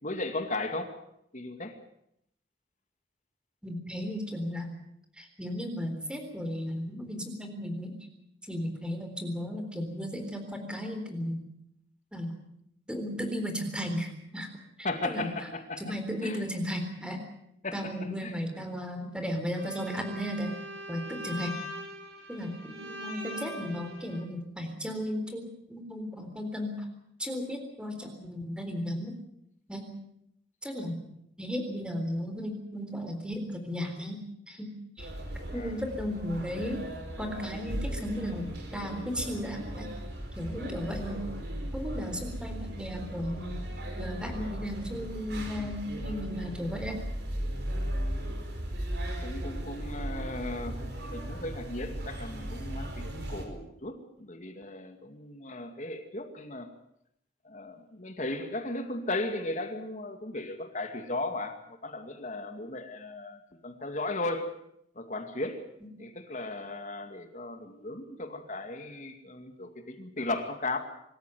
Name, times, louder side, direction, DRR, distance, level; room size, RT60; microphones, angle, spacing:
voice 1, 0.0-0.9 1.3-1.8 14.8-15.8 16.2-16.4 17.6-17.9 18.2-18.3 35.5-35.9 49.2-56.7 57.4-64.5 65.0-65.7 66.0-70.8, left 2 dB, 40° left, 7 dB, 2.3 m, -36 dB
voice 2, 3.6-4.7 5.2-8.1 8.5-11.4 12.1-12.4 12.9-14.5 14.8-15.3 15.8-17.2 17.7-20.6 20.9-21.6 22.3-26.9 27.2-29.2 29.7-29.9 30.6-31.0 31.4-34.2 34.5-35.1 35.5-36.8 37.2-39.9 40.4-41.3 41.7-43.6 44.0-47.0, equal, 5° right, 6 dB, 3.8 m, -35 dB
Bowed string instrument, 19.5-24.2, equal, 75° right, 6.1 m, -42 dB
sound 1, 35.0-53.5, equal, 60° right, 5.1 m, -37 dB
25.0 x 14.0 x 9.4 m, 0.76 s
head